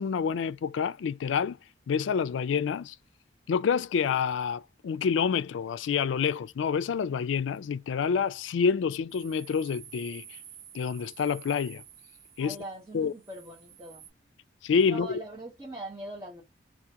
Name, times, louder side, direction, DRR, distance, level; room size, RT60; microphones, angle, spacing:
voice 1, 0.0-1.6 1.9-3.0 3.5-10.4 10.7-11.8 12.4-12.5 12.9-13.1 14.6-15.1, left 6 dB, 85° left, 0.3 m, -28 dB
sound 1, 9.1-14.1, right 10 dB, 75° right, 1.4 m, -50 dB
voice 2, 12.4-14.2 14.8-16.4, right 1 dB, 20° right, 0.9 m, -41 dB
2.8 x 2.5 x 3.6 m
head